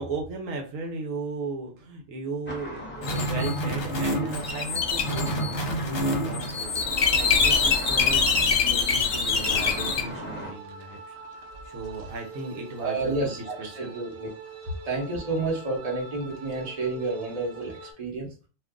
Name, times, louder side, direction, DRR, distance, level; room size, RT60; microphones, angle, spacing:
voice 1, 0.0-11.2 11.6-13.9, right 3 dB, 75° right, 1 dB, 1.1 m, -36 dB
sound 1, 2.5-10.5, equal, 10° left, 0.8 m, -38 dB
sound 2, 3.0-10.0, left 4 dB, 55° left, 0.9 m, -24 dB
sound 3, 9.0-17.9, right 4 dB, 60° right, 0.8 m, -44 dB
voice 2, 12.8-14.3 14.8-18.3, right 3 dB, 30° right, -2 dB, 1.0 m, -30 dB
2.5 x 2.4 x 3.5 m, 0.35 s
omnidirectional pair, 1.4 m